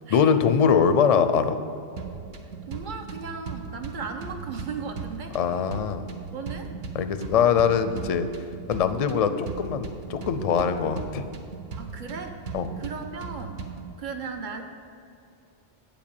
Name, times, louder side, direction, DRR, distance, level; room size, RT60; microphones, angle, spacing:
voice 1, 0.1-1.6 5.3-6.1 6.9-8.3 8.7-11.2 12.5-12.7, left 7 dB, 50° left, 10 dB, 0.5 m, -22 dB
sound 1, 2.0-14.0, right 5 dB, 75° right, 1.1 m, -38 dB
voice 2, 2.7-5.4 6.3-6.7 11.8-12.4 12.8-13.6 14.0-14.6, right 5 dB, 55° right, 5 dB, 0.9 m, -36 dB
8.8 x 5.2 x 7.0 m, 2.6 s
omnidirectional pair, 1.0 m